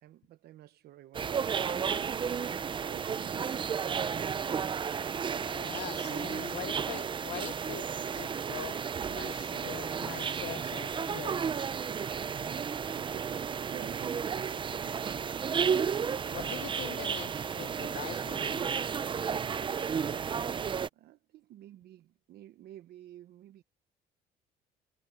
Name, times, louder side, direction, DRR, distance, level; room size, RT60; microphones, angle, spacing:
voice 1, 0.0-4.4 13.0-15.0 19.8-23.6, right 13 dB, 70° right, 0.9 m, -51 dB
sound 1, 1.1-20.9, right 6 dB, 30° right, 0.6 m, -33 dB
voice 2, 5.4-7.9 8.1-11.4 16.3-18.7, left 15 dB, 75° left, 0.9 m, -43 dB
cardioid pair, 110°, 17 cm